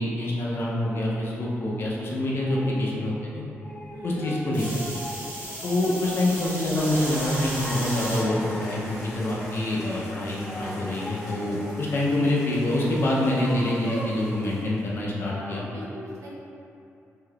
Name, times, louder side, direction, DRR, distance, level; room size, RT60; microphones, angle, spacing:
voice 1, 0.0-3.4 4.0-4.6 5.6-15.6, left 1 dB, 50° left, -4 dB, 0.5 m, -26 dB
voice 2, 2.3-2.7 3.9-4.3 6.0-6.2 15.3-16.3, equal, 85° right, -5 dB, 0.6 m, -40 dB
sound 1, 2.4-2.8 3.3-7.4 7.8-9.3 10.0-11.7 12.5-14.2, equal, 20° left, 0.8 m, -40 dB
sound 2, 4.5-8.2 8.9-9.3 10.6-10.7, right 1 dB, 25° right, 1.1 m, -35 dB
sound 3, 6.8-14.9, equal, 5° right, 1.4 m, -41 dB
3.3 x 2.7 x 2.3 m, 2.7 s
wide cardioid pair, 145°, 5 cm